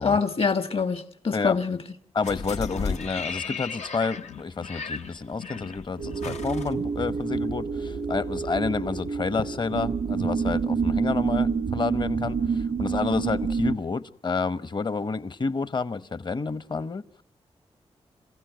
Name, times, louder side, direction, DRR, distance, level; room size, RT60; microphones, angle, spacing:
voice 1, 0.0-1.8, left 5 dB, 60° left, 1.4 m, -25 dB
voice 2, 2.1-17.0, left 4 dB, 40° left, 0.9 m, -29 dB
sound 1, 2.2-7.5 7.8-7.9, left 5 dB, 90° left, 0.9 m, -35 dB
sound 2, 6.0-13.8, right 5 dB, 85° right, 0.9 m, -28 dB
27.5 x 15.5 x 9.2 m
cardioid pair, 75°, 11 cm